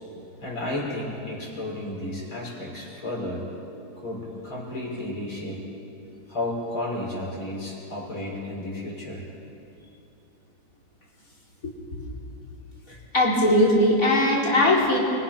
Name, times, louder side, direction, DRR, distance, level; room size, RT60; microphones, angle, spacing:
voice 1, 0.4-3.5 4.0-5.6 6.3-9.3, left 1 dB, 90° left, -4 dB, 6.7 m, -32 dB
voice 2, 11.6-12.0 13.1-15.0, left 1 dB, 40° left, -4 dB, 4.9 m, -20 dB
29.5 x 24.5 x 5.9 m, 2.7 s
omnidirectional pair, 2.2 m